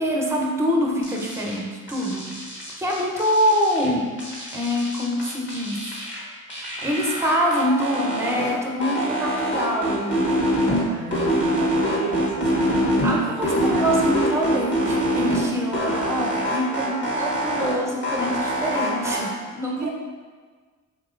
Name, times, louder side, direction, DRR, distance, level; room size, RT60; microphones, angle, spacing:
voice 1, 0.0-2.5 2.8-4.1 4.5-5.8 6.8-10.3 12.5-19.9, equal, 5° right, -1 dB, 0.6 m, -25 dB
sound 1, 1.0-1.6 1.9-3.9 4.2-6.2 6.5-8.5 8.8-10.8 11.1-13.1 13.4-15.4 15.7-17.7 18.0-19.2, equal, 30° left, 1.4 m, -24 dB
voice 2, 10.9-13.1 13.6-13.9 19.8-19.9, right 4 dB, 50° right, 1 dB, 0.4 m, -34 dB
3.6 x 3.0 x 2.5 m, 1.5 s
supercardioid pair, 45°, 37 cm